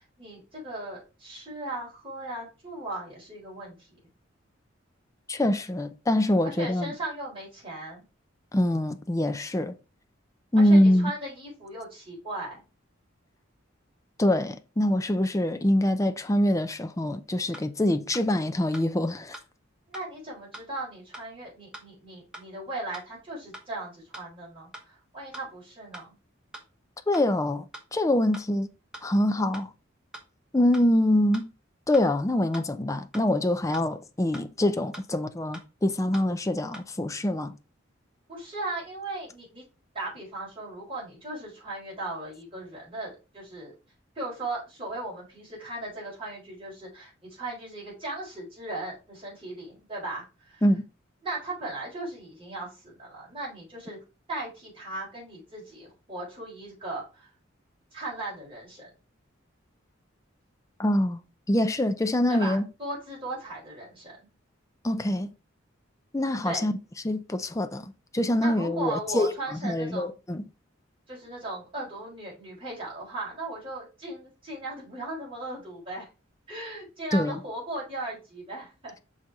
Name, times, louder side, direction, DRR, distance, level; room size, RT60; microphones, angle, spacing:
voice 1, 0.0-4.0 6.4-8.0 10.6-12.6 19.9-26.1 38.3-39.6 39.9-43.7 44.1-50.6 51.2-54.0 54.3-57.3 57.9-58.9 62.3-64.2 66.4-66.7 68.4-70.1 71.1-76.1 76.5-78.9, right 2 dB, 25° right, 4.3 m, -37 dB
voice 2, 5.3-6.9 8.5-9.8 10.5-11.1 14.2-19.4 27.1-28.7 29.0-29.7 30.5-31.5 31.9-37.5 50.6-50.8 60.8-61.2 61.5-62.7 64.8-65.3 66.1-66.7 67.0-69.3 69.6-70.4 77.1-77.4, left 1 dB, 15° left, 0.5 m, -24 dB
sound 1, 17.5-17.7 18.1-18.3 18.7-18.9 19.3-19.5 19.9-20.1 20.5-20.7 21.1-21.3 21.7-21.9 22.3-22.5 22.9-23.0 23.5-23.7 24.1-24.3 24.7-24.9 25.3-25.4 25.9-26.1 26.5-26.7 27.1-27.3 27.7-27.9 28.3-28.5 28.9-29.1 29.5-29.7 30.1-30.3 30.7-30.9 31.3-31.5 31.9-32.1 32.5-32.7 33.1-33.3 33.7-33.9 34.3-34.4 34.9-35.1 35.5-35.7 36.1-36.3 36.7-36.9, right 1 dB, 5° right, 1.2 m, -43 dB
6.1 x 4.1 x 4.8 m
head